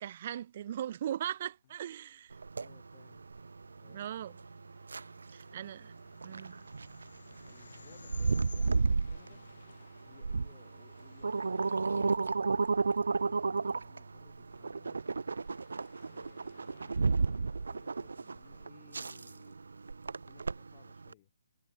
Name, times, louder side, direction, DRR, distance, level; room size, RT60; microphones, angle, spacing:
voice 1, 0.0-2.4 3.9-4.4 5.3-5.9 6.2-6.6, right 10 dB, 25° right, 0.8 m, -39 dB
sound 1, 2.3-21.1, right 4 dB, 85° right, 0.4 m, -33 dB
voice 2, 2.6-3.2 3.8-4.4 7.3-9.4 10.0-15.0 16.1-19.6 20.2-21.3, left 17 dB, 20° left, 1.2 m, -62 dB
sound 2, 3.3-19.8, left 7 dB, 35° left, 2.6 m, -66 dB
sound 3, 5.4-10.9, left 5 dB, 60° left, 2.1 m, -55 dB
hypercardioid pair, 180°, 0 cm